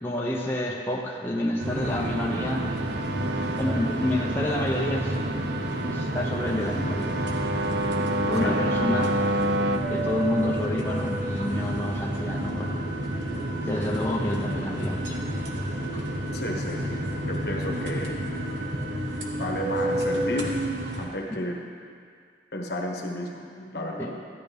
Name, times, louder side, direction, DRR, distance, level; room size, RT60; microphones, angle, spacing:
voice 1, 0.0-2.7 3.6-5.5 5.9-7.2 7.5-9.2 9.9-12.8 13.7-15.2 21.3-21.5 24.0-24.1, left 1 dB, 10° left, -3 dB, 0.7 m, -29 dB
sound 1, 1.6-21.1, right 1 dB, 90° right, 1.2 m, -30 dB
sound 2, 1.8-9.8, right 1 dB, 60° right, 0.5 m, -30 dB
voice 2, 16.3-18.2 19.4-20.5 21.0-21.6 22.5-24.2, left 1 dB, 60° left, 0 dB, 1.3 m, -33 dB
13.0 x 10.5 x 3.5 m, 2.2 s
head